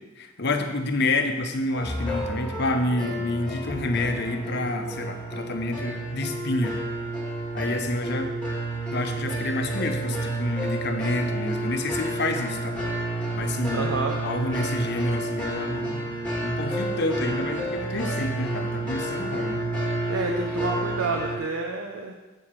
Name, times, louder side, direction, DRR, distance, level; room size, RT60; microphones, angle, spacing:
voice 1, 0.2-6.8 7.5-8.3 8.9-12.8 13.3-13.9 14.2-16.1 16.4-19.6, left 2 dB, 55° left, 6 dB, 0.8 m, -28 dB
sound 1, 1.7-21.4, right 1 dB, 5° left, 1.7 m, -30 dB
voice 2, 13.7-14.2 20.1-22.1, right 3 dB, 85° right, 1 dB, 0.7 m, -29 dB
7.8 x 4.8 x 7.4 m, 1.2 s
head